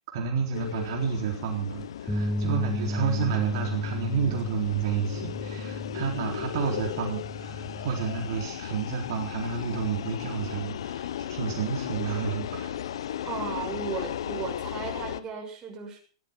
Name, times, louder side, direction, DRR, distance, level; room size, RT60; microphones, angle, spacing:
voice 1, 0.1-12.7, right 6 dB, 55° right, 1 dB, 4.0 m, -30 dB
sound 1, 0.5-15.2, left 10 dB, 75° left, 1.2 m, -36 dB
sound 2, 2.1-8.3, equal, 5° left, 1.9 m, -34 dB
voice 2, 13.2-16.0, right 6 dB, 25° right, 1 dB, 6.3 m, -36 dB
16.0 x 13.0 x 5.8 m, 0.41 s
hypercardioid pair, 135°, 3 cm